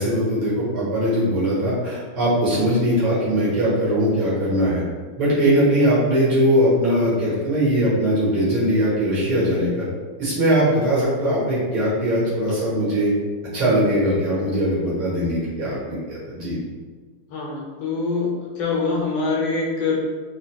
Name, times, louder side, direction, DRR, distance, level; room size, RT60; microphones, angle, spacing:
voice 1, 0.0-4.8 5.2-9.8 10.2-13.1 13.5-16.6, equal, 70° right, -9 dB, 2.1 m, -20 dB
voice 2, 17.3-18.3 18.6-20.0, left 4 dB, 70° left, -3 dB, 1.3 m, -24 dB
3.9 x 3.1 x 2.3 m, 1.5 s
omnidirectional pair, 2.4 m